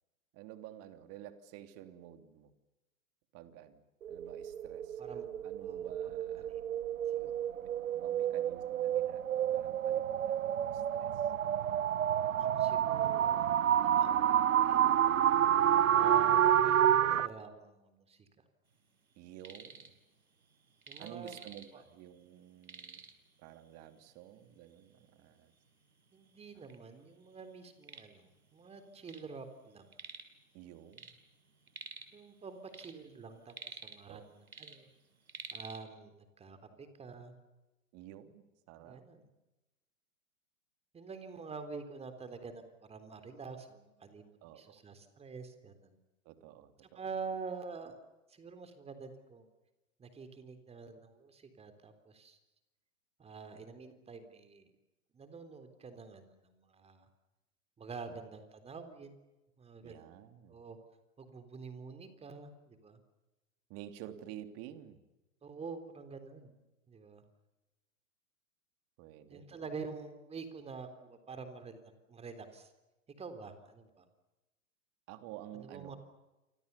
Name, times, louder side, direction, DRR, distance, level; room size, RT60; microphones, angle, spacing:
voice 1, 0.3-2.5 3.3-6.5 7.6-11.3 19.1-19.9 21.0-23.0 23.4-25.5 26.5-26.7 30.5-31.2 34.1-34.2 37.9-39.0 44.4-44.8 46.2-47.0 58.1-58.2 59.8-60.6 63.7-65.0 69.0-69.7 75.1-75.9, right 12 dB, 35° right, 8 dB, 3.1 m, -51 dB
sound 1, 4.0-17.3, right 10 dB, 75° right, 1.1 m, -29 dB
voice 2, 5.6-5.9 6.4-6.6 7.1-7.3 12.4-15.0 15.9-18.3 20.9-21.3 21.7-21.8 26.1-29.9 32.1-34.9 35.5-37.3 38.8-39.2 40.9-46.0 47.0-48.0 48.3-49.5 50.0-52.4 53.2-54.7 55.1-57.1 57.8-59.1 59.6-60.1 60.5-60.8 61.2-63.0 65.4-66.6 66.9-67.2 69.3-71.8 72.1-72.7 73.2-74.0 75.5-76.0, right 4 dB, 15° right, 9 dB, 3.7 m, -47 dB
sound 2, 19.2-19.9 20.2-22.0 22.3-22.4 22.6-23.3 24.1-24.2 24.7-24.8 25.5-25.6 25.9-26.8 27.2-29.3 29.6-30.4 30.7-32.2 32.6-34.2 34.5-35.8, right 4 dB, 90° right, 4.4 m, -49 dB
29.0 x 26.0 x 7.1 m, 1.0 s
hypercardioid pair, 120°, 41 cm